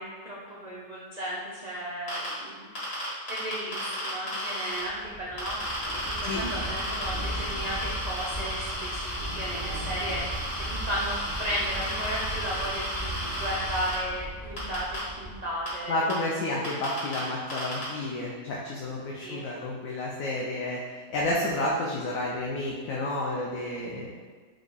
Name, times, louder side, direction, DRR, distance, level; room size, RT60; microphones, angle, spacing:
voice 1, 0.0-2.7 3.3-5.6 5.9-7.8 8.1-10.2 10.6-16.1 19.2-19.4, equal, 80° right, -6 dB, 0.3 m, -35 dB
sound 1, 2.1-2.3 2.8-4.8 5.4-13.9 14.6-15.0 15.7-15.8 16.1-16.2 16.6-17.2 17.5-17.8, equal, 85° left, 2.1 m, -34 dB
sound 2, 4.8-15.8, right 1 dB, 25° left, 0.7 m, -38 dB
voice 2, 15.9-24.1, left 1 dB, 70° left, -4 dB, 1.0 m, -30 dB
4.9 x 2.3 x 3.9 m, 1.5 s
omnidirectional pair, 1.6 m